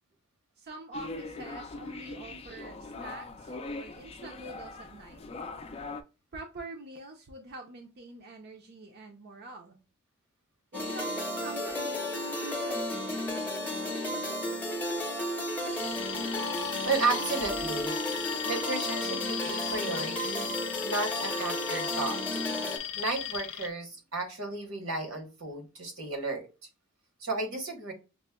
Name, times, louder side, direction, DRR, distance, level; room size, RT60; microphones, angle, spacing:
voice 1, 0.6-5.2 6.3-9.8 10.7-13.3, right 2 dB, 50° right, 2 dB, 0.6 m, -46 dB
sound 1, 0.9-6.0, left 3 dB, 30° left, 0.4 m, -41 dB
sound 2, 10.7-22.8, left 1 dB, 10° left, 0.7 m, -33 dB
Alarm, 15.7-23.7, left 10 dB, 85° left, 0.6 m, -37 dB
voice 2, 16.8-17.9 18.4-20.5 20.8-22.4 23.0-26.5 27.2-27.9, right 3 dB, 80° right, 3 dB, 1.2 m, -33 dB
5.9 x 2.1 x 2.2 m, 0.29 s
head